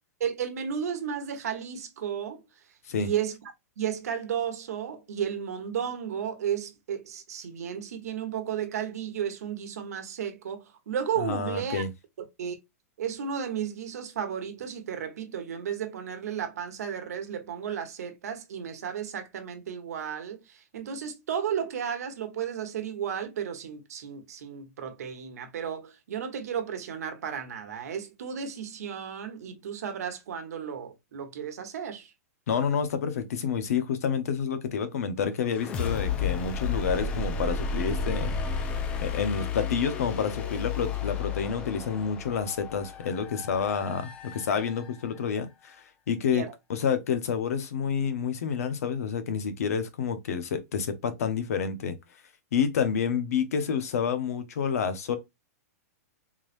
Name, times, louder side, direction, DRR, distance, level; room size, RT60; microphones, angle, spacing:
voice 1, 0.2-2.4 3.0-3.4 3.8-11.8 12.4-12.6 13.0-32.1 46.3-46.5, right 8 dB, 70° right, 1.2 m, -33 dB
voice 2, 11.2-11.9 32.5-38.3 38.6-38.7 39.0-45.8 46.1-46.4 46.7-52.0 52.5-55.2, left 6 dB, 65° left, 0.8 m, -29 dB
sound 1, 35.4-45.2, left 5 dB, 10° left, 0.3 m, -32 dB
3.7 x 3.2 x 2.5 m
supercardioid pair, 180°, 9 cm